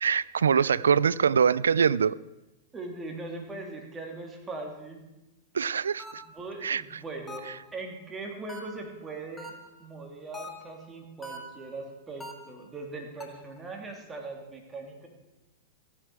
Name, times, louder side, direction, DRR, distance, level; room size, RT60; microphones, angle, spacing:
voice 1, 0.0-2.2 5.5-6.2 6.6-6.8, right 6 dB, 85° right, 20 dB, 0.3 m, -23 dB
voice 2, 2.7-5.0 6.3-7.4 7.7-9.5 9.8-15.1, right 3 dB, 15° right, 1 dB, 2.8 m, -40 dB
sound 1, 6.0-6.5 7.3-7.7 8.5-9.0 9.4-9.9 10.3-10.8 11.2-11.7 12.2-12.7 13.2-13.6, equal, 15° left, 2.0 m, -44 dB
15.5 x 9.6 x 4.8 m, 0.99 s
hypercardioid pair, 110°, 0 cm